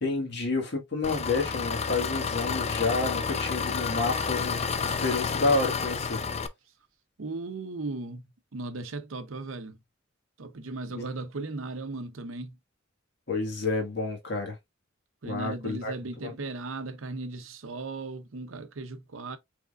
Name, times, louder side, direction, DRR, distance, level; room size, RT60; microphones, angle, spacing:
voice 1, 0.0-6.2 10.9-11.0 13.3-14.6 15.2-15.9 16.2-16.3, left 3 dB, 60° left, 1.7 m, -29 dB
Engine, 1.0-6.5, left 5 dB, 35° left, 0.4 m, -30 dB
voice 2, 7.2-8.2 8.5-9.8 10.4-12.6 15.2-19.4, right 3 dB, 80° right, 0.8 m, -37 dB
4.9 x 3.6 x 2.4 m
head